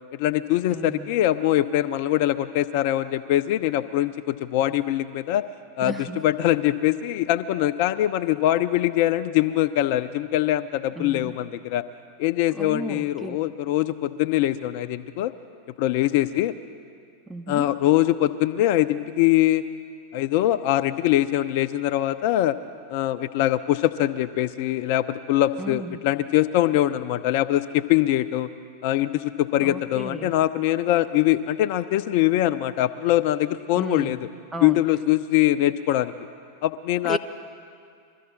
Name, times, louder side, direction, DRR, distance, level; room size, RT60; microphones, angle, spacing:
voice 1, 0.2-5.4 5.8-11.8 12.2-15.3 15.8-16.5 17.5-19.6 20.1-22.6 22.9-28.5 28.8-34.2 34.6-36.1 36.6-37.2, left 14 dB, 50° left, 11 dB, 0.4 m, -23 dB
voice 2, 0.7-1.1 5.8-6.2 11.0-11.3 12.5-13.4 17.3-17.7 25.6-26.0 29.6-30.3 33.8-34.2 34.5-34.8 37.0-37.2, right 2 dB, 5° right, 6 dB, 0.6 m, -34 dB
22.5 x 13.5 x 4.0 m, 2.2 s
figure-of-eight pair, 90°, 0 cm